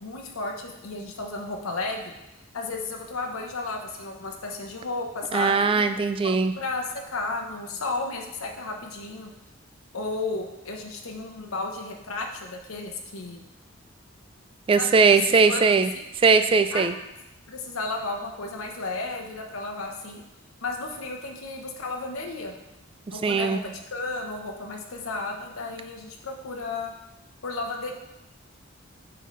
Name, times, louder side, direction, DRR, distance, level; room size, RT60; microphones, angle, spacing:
voice 1, 0.0-2.0 2.5-5.8 6.2-9.3 9.9-13.4 14.8-14.9 15.2-16.0 16.7-17.0 17.5-20.2 20.6-22.6 23.1-26.9 27.4-27.9, left 3 dB, 85° left, 1 dB, 0.9 m, -33 dB
voice 2, 5.3-6.5 14.7-15.9 16.2-16.9 23.2-23.6, right 4 dB, 25° right, 10 dB, 0.3 m, -20 dB
9.1 x 4.0 x 3.2 m, 0.93 s
head